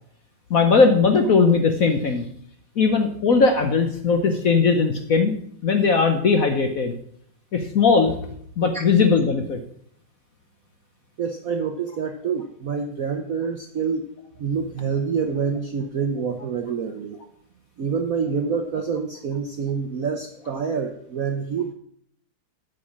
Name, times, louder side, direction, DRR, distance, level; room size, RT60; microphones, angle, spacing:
voice 1, 0.5-2.3 2.8-5.3 5.6-6.9 7.5-8.2 8.6-9.6, left 4 dB, 55° left, 5 dB, 1.0 m, -19 dB
voice 2, 11.2-14.1 14.4-17.2 17.8-21.7, right 6 dB, 65° right, 5 dB, 0.8 m, -27 dB
8.5 x 6.4 x 7.2 m, 0.68 s
omnidirectional pair, 2.3 m